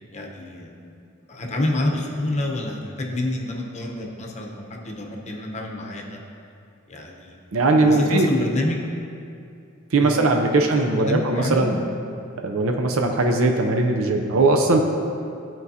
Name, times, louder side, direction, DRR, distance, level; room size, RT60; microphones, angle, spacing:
voice 1, 0.1-0.9 1.3-6.2 6.9-7.3 7.8-8.8 10.0-10.2 10.5-11.7, left 1 dB, 35° left, 0 dB, 0.9 m, -28 dB
voice 2, 7.5-8.3 9.9-11.7 12.4-14.8, right 2 dB, 85° right, 3 dB, 0.6 m, -19 dB
13.0 x 4.6 x 2.8 m, 2.5 s
head